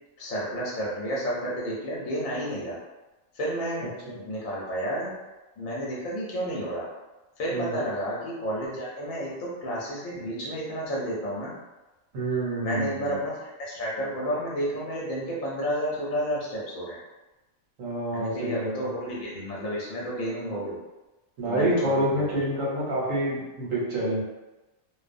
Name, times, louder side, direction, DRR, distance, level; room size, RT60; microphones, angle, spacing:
voice 1, 0.2-2.8 3.3-5.1 5.6-6.9 7.4-11.5 12.6-17.0 18.1-20.8 21.5-22.2, equal, 85° left, -5 dB, 1.1 m, -31 dB
voice 2, 3.8-4.1 7.5-7.7 12.1-13.2 17.8-18.9 21.4-24.2, right 1 dB, 80° right, -6 dB, 1.3 m, -27 dB
2.8 x 2.0 x 2.5 m, 1.1 s
omnidirectional pair, 1.4 m